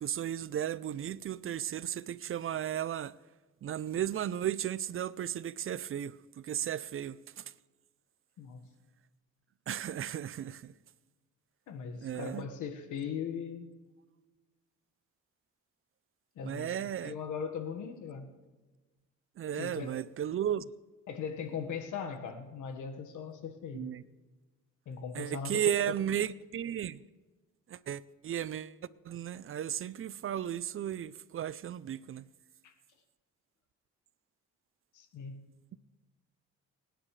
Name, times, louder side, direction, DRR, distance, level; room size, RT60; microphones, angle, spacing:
voice 1, 0.0-3.1 3.6-7.4 9.7-10.7 12.0-12.4 16.4-17.1 19.4-20.7 23.7-24.0 25.1-27.0 27.7-28.7 29.1-32.2 35.7-35.8, right 10 dB, 45° right, 0.5 m, -35 dB
voice 2, 8.4-8.7 11.7-13.7 16.4-18.3 19.5-20.0 21.1-24.0 24.9-26.0 32.6-32.7 34.9-35.4, left 6 dB, 80° left, 1.6 m, -39 dB
27.5 x 10.0 x 3.3 m
cardioid pair, 90°, 30 cm